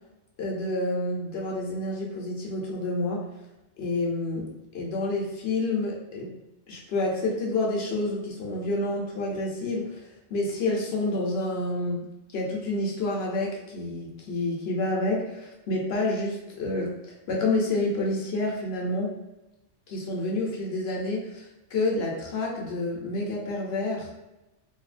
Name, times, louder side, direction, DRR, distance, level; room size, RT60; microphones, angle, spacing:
voice 1, 0.4-3.3 3.8-6.3 6.7-10.0 10.3-12.1 12.3-16.9 17.3-19.2 19.9-24.1, left 2 dB, 60° left, -1 dB, 0.8 m, -29 dB
2.7 x 2.6 x 2.4 m, 0.96 s
omnidirectional pair, 1.3 m